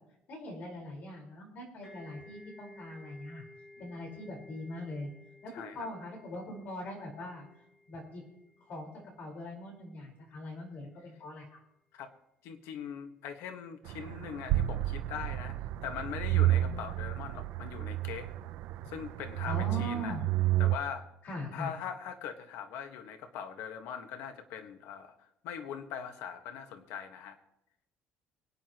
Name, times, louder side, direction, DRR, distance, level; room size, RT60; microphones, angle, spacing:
voice 1, 0.3-3.4 3.8-5.1 5.4-7.4 7.9-8.2 8.7-8.9 9.2-11.6 19.4-20.2 21.2-21.7, left 1 dB, 45° left, -1 dB, 4.7 m, -41 dB
sound 1, 1.8-9.4, left 2 dB, 25° left, 5.2 m, -55 dB
voice 2, 5.5-5.9 11.9-12.1 12.4-15.5 15.8-18.3 18.9-20.2 20.6-21.0 21.5-27.4, left 8 dB, 90° left, 6 dB, 1.6 m, -41 dB
sound 2, 13.9-20.8, right 15 dB, 70° right, 0.7 m, -31 dB
24.5 x 9.6 x 3.0 m, 0.85 s
cardioid pair, 180°, 4 cm